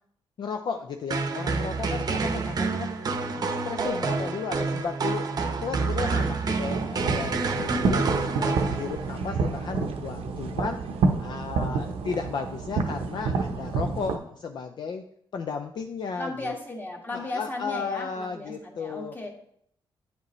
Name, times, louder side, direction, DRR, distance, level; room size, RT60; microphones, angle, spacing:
voice 1, 0.4-2.9 3.3-5.3 5.6-8.1 8.4-10.8 11.2-15.0 15.3-16.5 17.1-19.2, left 5 dB, 50° left, 6 dB, 0.4 m, -34 dB
sound 1, 1.1-9.2, right 4 dB, 45° right, 0.7 m, -28 dB
voice 2, 6.1-6.5 7.6-8.3 16.2-19.3, left 2 dB, 20° left, 1 dB, 1.4 m, -37 dB
sound 2, 6.6-14.2, right 4 dB, 85° right, 0.8 m, -28 dB
9.3 x 5.1 x 3.1 m, 0.69 s
cardioid pair, 115°, 9 cm